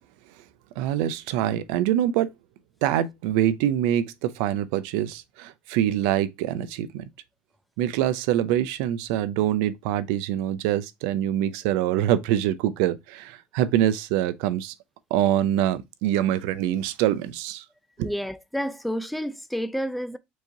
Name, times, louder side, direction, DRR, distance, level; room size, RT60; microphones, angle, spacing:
voice 1, 0.8-2.3 2.8-7.1 7.8-14.7 15.1-17.6 18.0-18.1, right 11 dB, 85° right, 0.4 m, -25 dB
voice 2, 18.0-20.2, equal, ahead, 0.4 m, -30 dB
4.6 x 2.9 x 2.6 m
cardioid pair, 115°, 4 cm